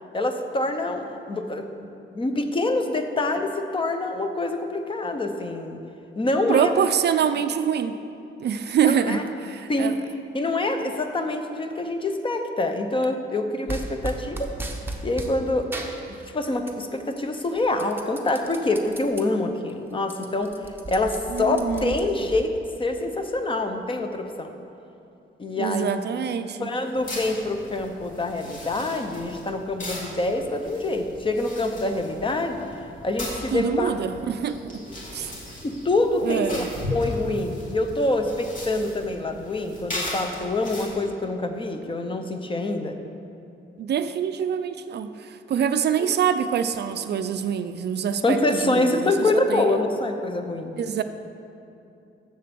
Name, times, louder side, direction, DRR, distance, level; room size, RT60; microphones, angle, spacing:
voice 1, 0.1-5.8 6.2-6.9 8.9-9.2 9.7-10.1 10.3-14.5 15.0-15.7 16.1-20.5 20.9-22.5 22.8-24.5 25.4-26.0 26.6-32.6 33.0-34.0 35.6-36.6 36.9-43.0 46.0-46.1 48.2-50.8, left 2 dB, 25° left, 6 dB, 0.6 m, -26 dB
voice 2, 6.5-7.9 8.4-10.0 21.3-21.9 25.6-26.7 33.5-34.8 35.1-35.3 36.2-36.7 43.8-49.1 49.5-49.7 50.8-51.0, right 8 dB, 55° right, 10 dB, 0.4 m, -25 dB
sound 1, 13.7-15.4 15.7-16.9 17.2-19.2 19.7-19.8 20.0-22.4, right 2 dB, 10° right, 0.7 m, -35 dB
sound 2, 26.9-40.9, left 1 dB, 40° left, 2.1 m, -37 dB
7.5 x 6.8 x 6.8 m, 2.7 s
wide cardioid pair, 165°, 20 cm